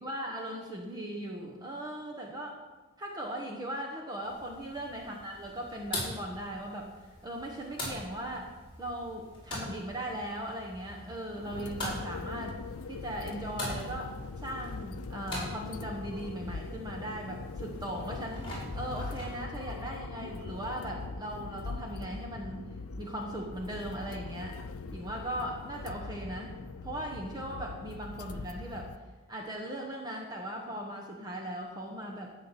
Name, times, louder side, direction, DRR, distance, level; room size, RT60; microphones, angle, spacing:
voice 1, 0.0-2.6 3.0-6.9 7.2-8.5 8.8-12.6 12.9-22.7 23.0-24.6 24.9-28.9 29.3-32.3, right 1 dB, 20° right, -1 dB, 1.2 m, -38 dB
sound 1, 4.2-19.4, left 1 dB, 25° left, 4.8 m, -43 dB
sound 2, 11.3-29.0, left 3 dB, 90° left, 0.6 m, -41 dB
13.0 x 5.9 x 8.1 m, 1.2 s
head